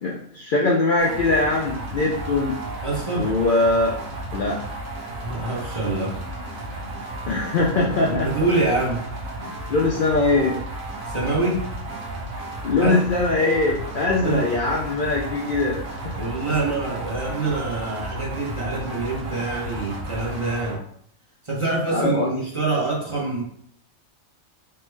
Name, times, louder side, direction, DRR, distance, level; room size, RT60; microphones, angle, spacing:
voice 1, 0.0-2.6 3.1-4.0 4.3-4.6 7.3-8.3 9.4-10.6 12.6-16.1 21.9-22.3, left 2 dB, 85° left, -2 dB, 0.4 m, -22 dB
sound 1, 1.0-20.8, right 1 dB, 75° right, 1.2 m, -33 dB
voice 2, 2.8-3.3 5.2-6.1 8.1-9.0 11.0-11.6 12.8-13.1 14.2-14.5 16.2-20.8 21.4-23.4, right 3 dB, 30° right, -6 dB, 0.7 m, -25 dB
3.3 x 2.2 x 3.1 m, 0.65 s
omnidirectional pair, 1.4 m